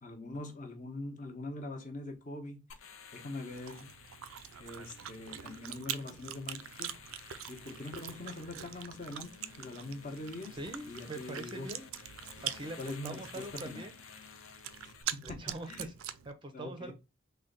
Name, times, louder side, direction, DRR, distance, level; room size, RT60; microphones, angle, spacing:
voice 1, 0.0-2.6 3.1-3.9 4.6-7.2 7.5-10.6 10.9-11.7 12.8-13.8 14.5-14.6 14.8-15.9 16.5-16.9, left 2 dB, 40° left, 0.9 m, -43 dB
sound 1, 2.7-15.0, left 6 dB, 80° left, 0.6 m, -54 dB
Chewing mastication, 3.5-16.3, right 11 dB, 85° right, 0.4 m, -44 dB
voice 2, 10.5-11.8 12.4-14.0 15.2-16.9, right 2 dB, 25° right, 0.5 m, -43 dB
3.8 x 2.2 x 3.8 m
head